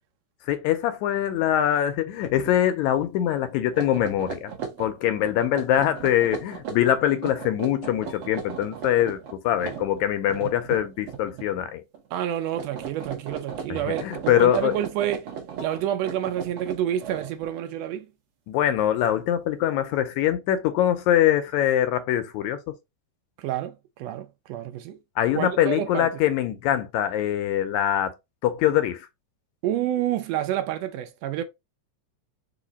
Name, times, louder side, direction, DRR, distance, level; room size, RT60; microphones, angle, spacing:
voice 1, 0.5-4.5 4.8-9.2 9.4-11.8 13.9-14.8 18.5-22.6 25.2-28.1 28.4-29.1, left 11 dB, 80° left, 1.7 m, -23 dB
sound 1, 2.2-2.5 2.9-3.1 3.6-11.6 11.9-12.3 12.5-17.6, right 7 dB, 60° right, 1.7 m, -37 dB
voice 2, 12.1-15.3 15.6-18.1 23.4-25.0 25.3-26.1 29.6-31.4, right 11 dB, 80° right, 1.5 m, -28 dB
4.9 x 2.5 x 3.9 m
omnidirectional pair, 3.5 m